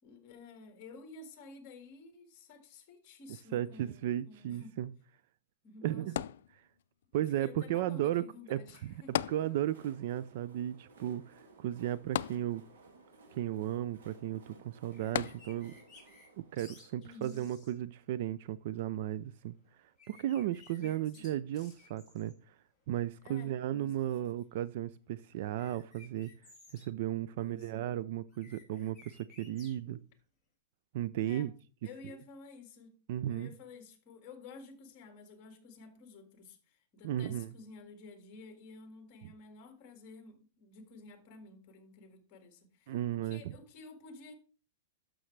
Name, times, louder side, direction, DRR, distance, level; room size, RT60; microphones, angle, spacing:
voice 1, 0.0-4.7 5.6-6.1 7.1-9.3 16.9-17.5 20.8-21.3 23.2-23.9 27.3-27.9 29.9-30.0 31.3-31.5 31.8-32.9 33.3-43.0 43.2-44.3, left 3 dB, 30° left, 1.9 m, -52 dB
voice 2, 3.5-4.9 5.8-6.2 7.1-8.9 9.3-12.6 13.4-15.7 16.5-19.5 20.1-22.3 22.9-26.3 26.7-30.0 30.9-31.5 33.1-33.5 37.0-37.5 39.2-39.3 42.9-43.5, right 12 dB, 50° right, 0.3 m, -35 dB
sound 1, 6.2-7.1 9.1-10.0 10.3-10.4 12.2-13.0 15.1-15.9 16.6-16.7, left 11 dB, 70° left, 0.3 m, -36 dB
Train, 8.6-18.3, right 3 dB, 90° right, 2.3 m, -59 dB
sound 2, 14.9-16.3 16.6-17.7 20.0-22.3 25.5-26.8 28.3-29.8, left 3 dB, ahead, 3.3 m, -58 dB
12.0 x 6.3 x 3.3 m
supercardioid pair, 170°, 0 cm